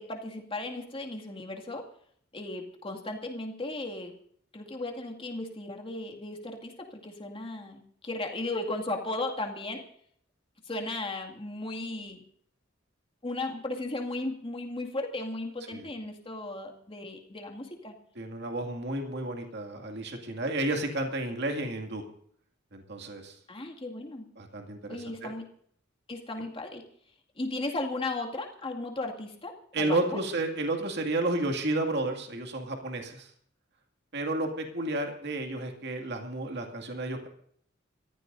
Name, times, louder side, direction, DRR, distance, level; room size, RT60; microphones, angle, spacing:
voice 1, 0.0-1.9 2.3-4.1 4.5-9.8 10.7-12.2 13.2-18.0 23.5-24.3 24.9-25.5 26.1-26.8 27.4-30.2, left 2 dB, 30° left, 2 dB, 2.2 m, -36 dB
voice 2, 18.2-22.0 22.7-23.4 24.4-25.3 29.7-33.3 34.1-37.3, right 2 dB, 60° right, 3 dB, 2.3 m, -32 dB
29.5 x 14.5 x 2.7 m, 0.63 s
head